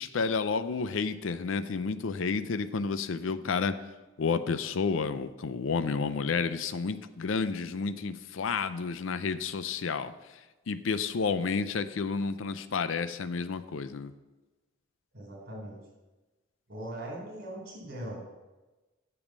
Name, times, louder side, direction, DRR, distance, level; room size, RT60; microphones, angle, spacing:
voice 1, 0.0-3.8 4.2-10.1 10.7-14.1, left 5 dB, 80° left, 12 dB, 0.5 m, -30 dB
voice 2, 15.1-15.8 16.7-18.2, right 1 dB, 55° right, -2 dB, 3.9 m, -40 dB
8.7 x 7.1 x 6.2 m, 1.1 s
head